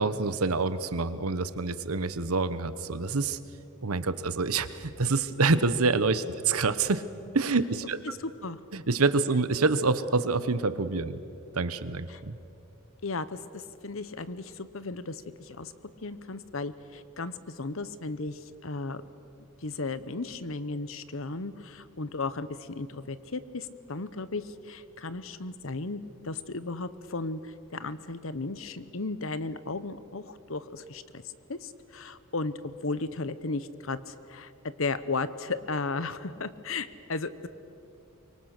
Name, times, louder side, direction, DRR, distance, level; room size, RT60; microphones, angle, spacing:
voice 1, 0.0-3.4 3.8-7.0 7.3-8.0 8.7-11.2 11.5-12.4, right 3 dB, 85° right, 13 dB, 1.1 m, -27 dB
voice 2, 8.0-8.6 12.1-12.2 13.0-15.7 16.0-19.0 19.6-32.5 32.8-34.5 34.8-37.5, left 3 dB, 65° left, 14 dB, 1.0 m, -35 dB
25.0 x 23.5 x 6.7 m, 2.8 s
head